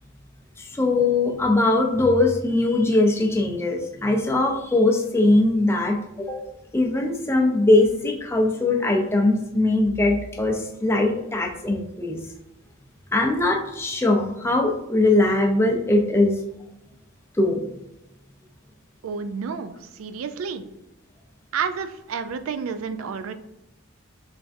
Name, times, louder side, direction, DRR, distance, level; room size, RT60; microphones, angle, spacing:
voice 1, 0.6-6.4 6.7-12.2 13.1-16.4 17.4-17.6, left 2 dB, 10° left, 1 dB, 0.4 m, -21 dB
voice 2, 19.0-20.6 21.5-23.3, right 6 dB, 90° right, 10 dB, 0.3 m, -30 dB
3.5 x 3.3 x 2.5 m, 0.89 s
head